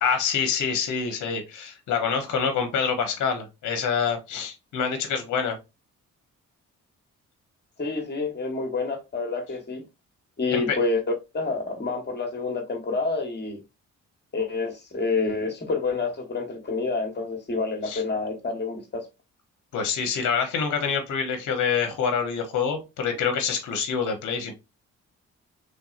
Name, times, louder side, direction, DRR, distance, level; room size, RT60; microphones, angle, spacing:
voice 1, 0.0-5.6 10.5-10.8 17.8-18.0 19.7-24.5, left 6 dB, 65° left, 0.8 m, -26 dB
voice 2, 7.8-9.8 10.4-11.0 11.3-13.6 14.3-19.1, left 3 dB, 35° left, 1.1 m, -28 dB
3.2 x 2.6 x 2.4 m
cardioid pair, 65°, 32 cm